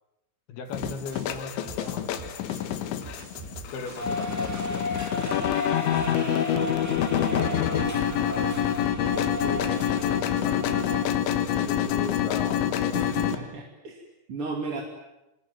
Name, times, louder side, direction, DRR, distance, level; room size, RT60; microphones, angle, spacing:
voice 1, 0.5-2.4 3.7-4.9 5.3-6.7 7.2-10.9 11.6-13.3, left 5 dB, 65° left, 8 dB, 3.7 m, -39 dB
sound 1, 0.7-13.4, left 10 dB, 90° left, 3.9 m, -27 dB
sound 2, 0.8-6.3, right 5 dB, 90° right, 6.0 m, -44 dB
sound 3, 4.0-11.1, left 1 dB, 5° right, 1.7 m, -34 dB
voice 2, 12.9-14.8, right 3 dB, 35° right, 1 dB, 3.0 m, -35 dB
26.5 x 22.0 x 9.4 m, 0.93 s
omnidirectional pair, 5.2 m